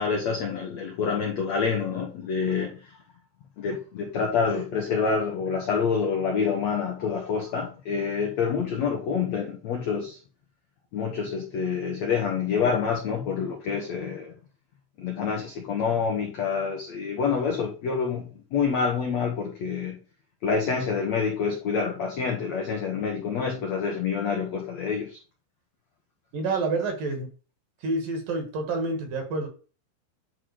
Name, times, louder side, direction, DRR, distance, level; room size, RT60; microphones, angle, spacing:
voice 1, 0.0-3.0 3.6-10.2 10.9-14.3 15.0-18.2 18.5-20.0 20.4-25.2, left 6 dB, 75° left, 1.5 m, -27 dB
voice 2, 26.3-27.3 27.8-29.5, right 3 dB, 55° right, 3.0 m, -28 dB
11.0 x 4.0 x 4.9 m
omnidirectional pair, 5.2 m